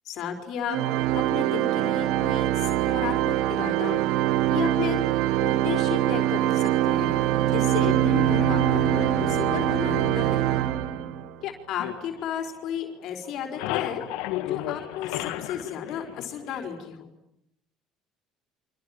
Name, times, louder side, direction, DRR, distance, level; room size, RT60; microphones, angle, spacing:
voice 1, 0.0-0.8 1.1-4.0 4.5-5.0 5.4-7.2 7.4-10.4 11.4-14.0 14.4-17.1, left 8 dB, 65° left, 5 dB, 4.4 m, -33 dB
Organ, 0.7-11.3, right 14 dB, 75° right, 1.1 m, -24 dB
Bowed string instrument, 6.8-11.6, left 5 dB, 15° left, 6.6 m, -35 dB
sound 1, 11.8-12.9 13.2-16.9, left 14 dB, 80° left, 2.3 m, -34 dB
30.0 x 25.5 x 7.5 m, 0.79 s
supercardioid pair, 90°, 0 cm